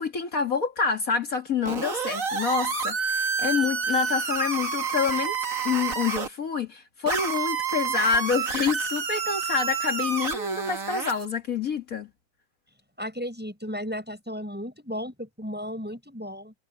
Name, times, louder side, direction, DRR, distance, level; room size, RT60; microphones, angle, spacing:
voice 1, 0.0-5.4 5.6-12.1, left 5 dB, 65° left, 2.4 m, -27 dB
sound 1, 1.6-6.3 7.1-11.2, right 5 dB, 60° right, 2.2 m, -29 dB
voice 2, 13.0-16.5, equal, 5° right, 6.7 m, -34 dB
omnidirectional pair, 1.6 m